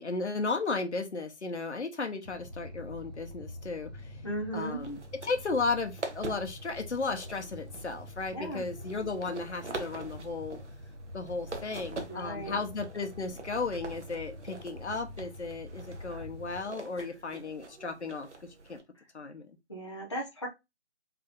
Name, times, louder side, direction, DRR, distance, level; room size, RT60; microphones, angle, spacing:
voice 1, 0.0-4.3 4.5-10.6 11.1-18.3 18.7-18.8 19.1-19.6, left 4 dB, 75° left, 0.9 m, -35 dB
sound 1, 2.2-16.6, left 1 dB, 40° right, 0.5 m, -46 dB
voice 2, 4.2-4.8 8.3-8.6 12.1-12.6 19.7-20.5, right 1 dB, 25° left, 0.7 m, -36 dB
sound 2, 4.8-18.8, right 3 dB, 80° right, 0.9 m, -45 dB
3.4 x 2.4 x 3.7 m
figure-of-eight pair, 170°, 35 cm